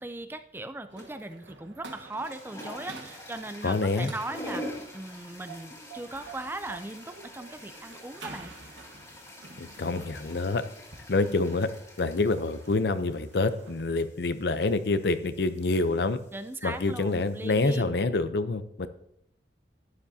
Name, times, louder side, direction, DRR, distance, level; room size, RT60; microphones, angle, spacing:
voice 1, 0.0-8.5 16.3-18.0, right 2 dB, 10° right, 9 dB, 0.4 m, -39 dB
sound 1, 0.9-14.1, right 3 dB, 85° right, 1.3 m, -49 dB
sound 2, 1.0-1.3 2.0-17.8, left 1 dB, 15° left, 2.0 m, -46 dB
voice 2, 3.6-4.1 9.6-10.6 11.1-11.7 12.0-16.2 16.6-18.9, left 3 dB, 60° left, 12 dB, 0.6 m, -27 dB
11.5 x 10.0 x 2.8 m, 0.76 s
head